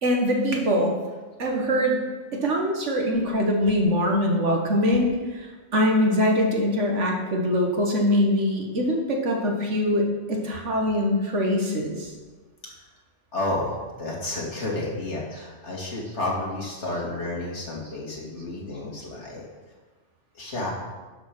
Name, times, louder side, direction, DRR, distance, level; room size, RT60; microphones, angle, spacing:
voice 1, 0.0-1.0 1.4-2.0 2.3-12.1, equal, 75° right, 1 dB, 1.8 m, -23 dB
voice 2, 13.3-13.7 14.0-19.5 20.3-20.7, left 2 dB, 70° left, -3 dB, 2.7 m, -31 dB
11.5 x 5.2 x 6.1 m, 1.3 s
omnidirectional pair, 1.2 m